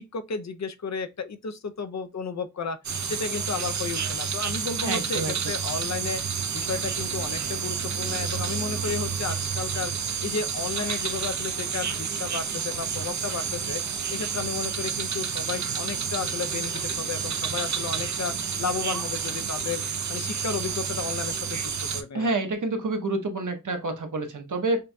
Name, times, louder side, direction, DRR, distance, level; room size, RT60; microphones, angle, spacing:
voice 1, 0.0-13.8 14.1-19.8 20.1-22.3, left 5 dB, 65° left, 0.5 m, -33 dB
sound 1, 2.8-22.0, right 6 dB, 65° right, 0.5 m, -30 dB
voice 2, 4.8-5.5 22.1-24.8, right 2 dB, 90° right, 0.8 m, -28 dB
5.3 x 2.6 x 2.2 m
wide cardioid pair, 75°, 30 cm